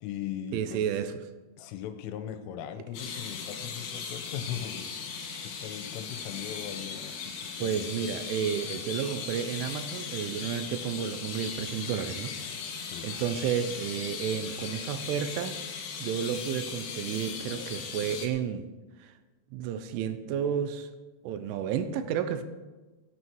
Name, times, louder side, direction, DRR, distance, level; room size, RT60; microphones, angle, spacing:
voice 1, 0.0-0.8 1.6-7.9 12.9-13.1, left 9 dB, 80° left, 8 dB, 3.5 m, -39 dB
voice 2, 0.5-1.1 7.6-12.3 12.8-18.7 19.0-19.1 19.5-20.9 21.2-22.4, right 8 dB, 80° right, 10 dB, 3.1 m, -32 dB
sound 1, 2.9-18.3, left 6 dB, 65° left, 3.9 m, -38 dB
17.0 x 9.7 x 4.6 m, 1.2 s
omnidirectional pair, 5.7 m